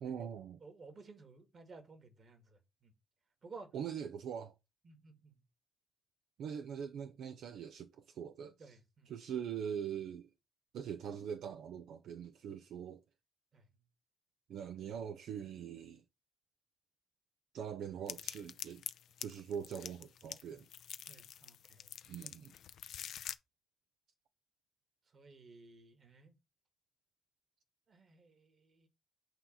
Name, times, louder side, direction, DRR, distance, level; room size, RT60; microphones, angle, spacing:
voice 1, 0.0-0.6 3.7-4.5 6.4-8.8 9.1-10.3 10.7-13.0 14.5-16.0 17.5-18.8 19.2-20.6 22.1-22.5, right 8 dB, 75° right, 0.5 m, -42 dB
voice 2, 0.6-2.9 3.4-3.7 4.8-5.3 8.6-9.1 13.5-13.7 21.1-21.9 25.1-26.4 27.9-28.9, right 4 dB, 45° right, 1.9 m, -55 dB
sound 1, 18.1-23.4, left 10 dB, 70° left, 0.5 m, -46 dB
7.9 x 2.8 x 5.5 m
cardioid pair, 90°, 0 cm